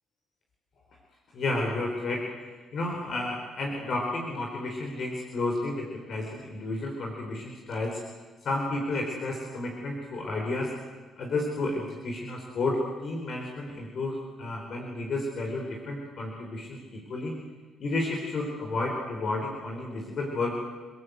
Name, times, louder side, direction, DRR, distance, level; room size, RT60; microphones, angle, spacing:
voice 1, 1.3-2.2 2.7-8.0 8.4-10.7 11.2-17.3 17.8-20.6, left 2 dB, 60° left, 0 dB, 4.3 m, -31 dB
29.5 x 18.0 x 8.1 m, 1.4 s
cardioid pair, 90°, 0 cm